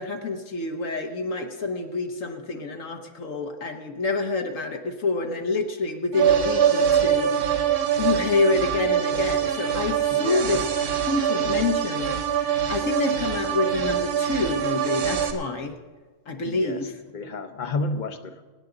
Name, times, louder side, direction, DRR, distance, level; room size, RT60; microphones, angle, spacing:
voice 1, 0.0-7.3 8.0-10.6 11.1-15.7 16.3-16.9, left 3 dB, 55° left, 5 dB, 1.3 m, -27 dB
sound 1, 6.1-15.3, right 8 dB, 70° right, 1.6 m, -24 dB
voice 2, 10.1-10.6 16.4-18.4, left 3 dB, 40° left, 7 dB, 0.8 m, -32 dB
23.0 x 10.0 x 3.9 m, 1.3 s
omnidirectional pair, 1.7 m